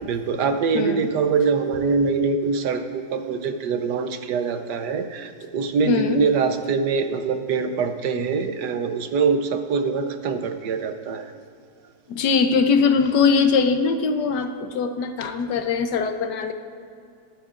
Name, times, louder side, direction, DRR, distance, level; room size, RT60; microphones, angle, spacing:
voice 1, 0.0-11.3, right 5 dB, 80° right, 8 dB, 1.4 m, -24 dB
voice 2, 0.7-1.1 5.9-6.2 12.1-16.5, left 5 dB, 75° left, 7 dB, 1.4 m, -21 dB
23.5 x 9.2 x 2.5 m, 2.4 s
omnidirectional pair, 1.8 m